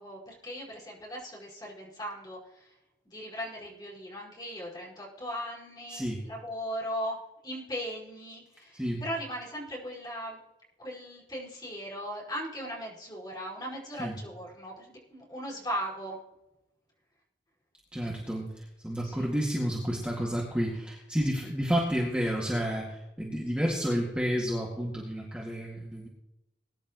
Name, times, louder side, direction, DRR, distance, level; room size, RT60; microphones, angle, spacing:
voice 1, 0.0-2.6 3.0-7.2 7.4-10.4 10.8-16.2 19.0-19.3, equal, 20° left, -5 dB, 5.2 m, -38 dB
voice 2, 5.9-6.2 8.7-9.0 14.0-14.2 17.9-26.1, equal, 5° right, -4 dB, 2.0 m, -30 dB
21.0 x 11.0 x 3.0 m, 0.95 s
head